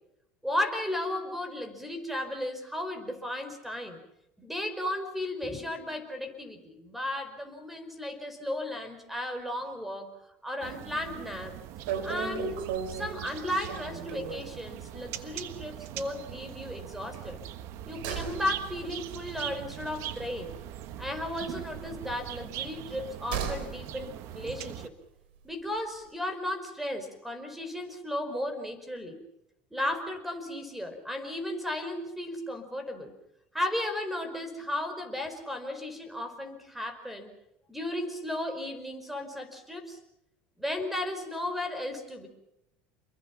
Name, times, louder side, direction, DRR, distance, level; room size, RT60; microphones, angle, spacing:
voice 1, 0.4-4.0 4.4-10.1 10.4-11.5 12.0-12.6 12.9-17.4 17.9-20.5 21.0-24.9 25.4-29.2 29.7-33.1 33.5-37.3 37.7-40.0 40.6-42.3, left 1 dB, 5° right, 9 dB, 5.1 m, -35 dB
sound 1, 10.6-24.9, right 12 dB, 60° right, 1.4 m, -41 dB
sound 2, 11.9-14.6 14.9-15.1 15.4-15.5 17.1-21.1 21.3-23.8 24.1-24.2, right 7 dB, 85° right, 4.1 m, -37 dB
28.5 x 22.5 x 5.9 m, 0.83 s
supercardioid pair, 110°, 5 cm